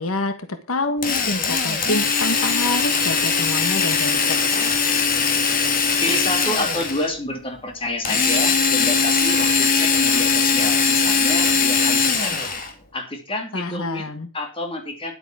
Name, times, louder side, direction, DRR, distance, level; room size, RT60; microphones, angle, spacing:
voice 1, 0.0-4.9 13.5-14.3, left 2 dB, 75° left, 9 dB, 1.4 m, -27 dB
Drill, 1.0-7.1 8.0-12.7, left 5 dB, 40° left, 2.4 m, -20 dB
Water / Splash splatter, 1.7-5.5 6.1-6.2 6.5-6.6, right 5 dB, 35° right, 2.3 m, -37 dB
voice 2, 6.0-12.4 12.9-15.1, left 1 dB, 25° left, 4 dB, 2.8 m, -29 dB
11.5 x 8.4 x 6.1 m, 0.33 s
head